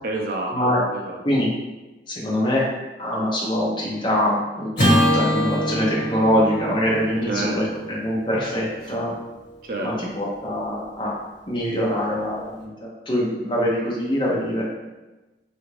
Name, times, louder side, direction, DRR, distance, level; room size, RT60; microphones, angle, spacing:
voice 1, 0.0-1.2 7.3-7.8 8.8-8.9 9.6-10.1, right 2 dB, 50° right, 0 dB, 0.4 m, -29 dB
voice 2, 2.1-2.7 3.0-9.1 9.8-11.2 11.5-14.6, equal, 25° left, -5 dB, 0.7 m, -24 dB
Acoustic guitar / Strum, 4.7-9.2, equal, 45° left, 1.3 m, -24 dB
3.4 x 2.5 x 3.1 m, 1.1 s
head